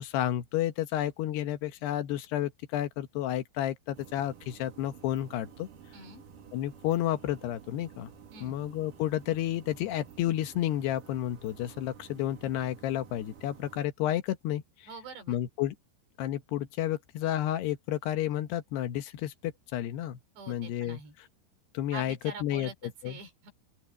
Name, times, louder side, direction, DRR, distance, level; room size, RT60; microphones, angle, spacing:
voice 1, 0.0-5.7 6.5-8.1 8.4-14.9 15.3-15.8 16.2-20.2 20.5-21.0 21.7-22.7 23.0-23.2, left 12 dB, 75° left, 3.2 m, -31 dB
sound 1, 3.9-13.9, right 7 dB, 55° right, 3.7 m, -52 dB
voice 2, 5.9-6.2 8.3-8.6 14.9-15.4 20.4-21.1 21.9-23.5, right 4 dB, 80° right, 6.8 m, -45 dB
open air
omnidirectional pair, 4.9 m